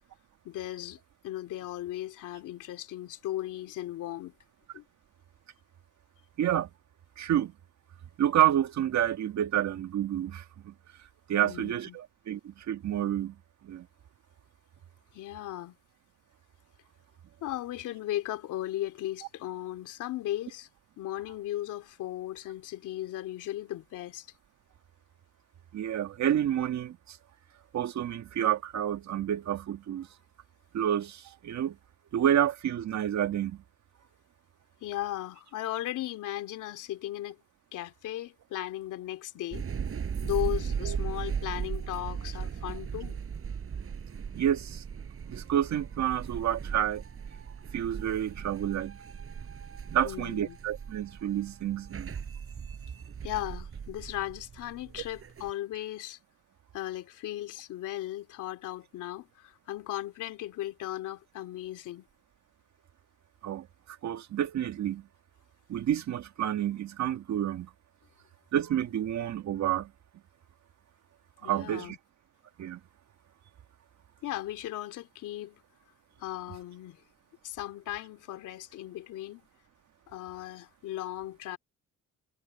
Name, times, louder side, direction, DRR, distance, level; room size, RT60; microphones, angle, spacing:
voice 1, 0.4-1.0 1.2-4.3 4.7-4.8 11.4-12.0 15.1-15.8 17.4-20.7 21.0-24.3 34.8-37.4 37.7-39.7 40.2-43.2 50.0-50.6 53.2-56.2 56.7-62.1 71.4-72.0 74.2-75.6 76.2-77.0 77.4-79.5 80.1-81.6, left 14 dB, 85° left, 3.1 m, -37 dB
voice 2, 6.4-6.7 7.2-7.5 8.2-10.7 11.3-13.4 13.6-13.9 25.7-27.2 27.7-30.1 30.7-31.8 32.1-33.6 40.8-41.0 44.3-44.8 45.3-47.0 47.7-49.0 49.9-52.1 63.4-65.1 65.7-67.7 68.5-69.9 71.4-72.0 72.6-72.8, right 11 dB, 65° right, 1.8 m, -29 dB
sound 1, 39.5-55.5, right 7 dB, 45° right, 7.1 m, -38 dB
cardioid pair, 90°, 30 cm